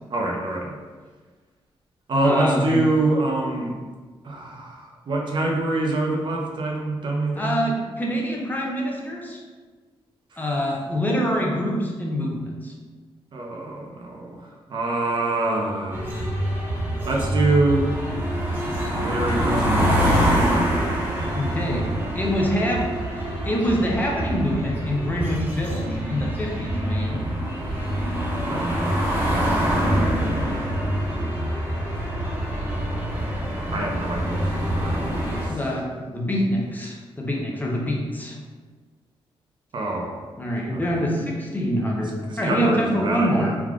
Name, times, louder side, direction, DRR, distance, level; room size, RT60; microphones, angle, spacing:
voice 1, 0.1-0.7 2.1-3.7 4.2-7.7 10.3-10.4 13.3-14.4 14.7-16.2 17.0-17.9 18.6-20.8 28.5-29.2 33.7-34.9 35.4-35.6 39.7-40.2 40.7-41.2 42.3-43.6, right 2 dB, 55° right, 0 dB, 0.5 m, -25 dB
voice 2, 2.2-2.8 7.4-9.4 10.4-12.7 21.3-21.9 22.1-22.9 23.2-27.2 35.5-38.4 40.4-43.5, equal, 15° left, -2 dB, 0.5 m, -25 dB
sound 1, 15.9-35.5, equal, 20° right, 0.8 m, -25 dB
3.4 x 2.3 x 2.3 m, 1.4 s
cardioid pair, 85°, 10 cm